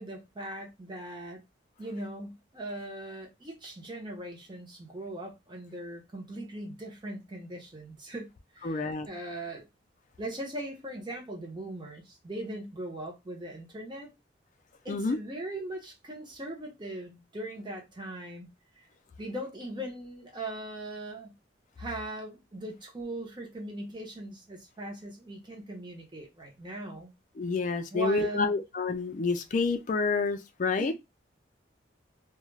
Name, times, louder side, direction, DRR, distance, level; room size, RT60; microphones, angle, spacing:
voice 1, 0.0-1.4 1.8-9.7 10.2-14.1 14.8-18.5 19.2-21.3 21.8-27.1 27.9-28.6 30.8-30.9, right 1 dB, 25° right, 0.7 m, -39 dB
voice 2, 8.6-9.1 14.9-15.2 27.4-30.9, left 4 dB, 40° left, 0.4 m, -28 dB
2.3 x 2.2 x 3.1 m
head